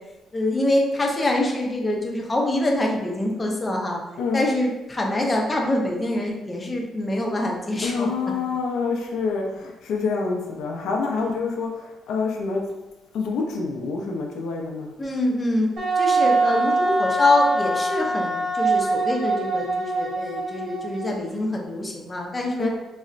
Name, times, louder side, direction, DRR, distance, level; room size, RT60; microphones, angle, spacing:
voice 1, 0.3-4.0 4.3-8.1 11.1-11.4 15.0-15.7 16.0-22.7, left 1 dB, 25° left, 0 dB, 0.6 m, -25 dB
voice 2, 7.8-12.6 13.1-14.9 22.6-22.8, left 4 dB, 80° left, 0 dB, 0.4 m, -27 dB
Wind instrument woodwind instrument, 15.8-21.2, right 3 dB, 65° right, 1.1 m, -23 dB
3.8 x 2.0 x 2.4 m, 1.0 s
cardioid pair, 90°, 0 cm